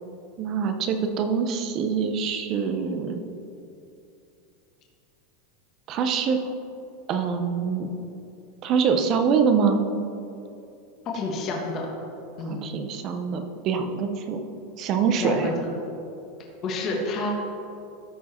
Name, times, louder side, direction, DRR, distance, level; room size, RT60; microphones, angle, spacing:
voice 1, 0.4-3.3 5.9-6.4 7.1-7.9 8.6-9.8 12.5-14.4 14.8-15.5, right 6 dB, 35° right, 7 dB, 0.6 m, -24 dB
voice 2, 11.0-11.9 12.4-12.7 15.2-15.7 16.6-17.3, left 3 dB, 30° left, -1 dB, 1.3 m, -29 dB
13.5 x 4.7 x 4.3 m, 2.7 s
supercardioid pair, 165°, 0 cm